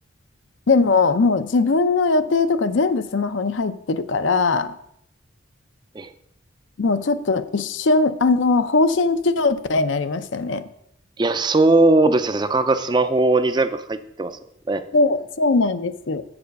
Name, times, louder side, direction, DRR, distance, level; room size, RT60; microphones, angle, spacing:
voice 1, 0.7-4.7 6.8-10.6 14.9-16.2, left 3 dB, 70° left, 11 dB, 0.5 m, -20 dB
voice 2, 11.2-14.4 14.7-14.8, right 2 dB, 20° right, 10 dB, 0.4 m, -19 dB
7.6 x 6.9 x 5.3 m, 0.73 s
head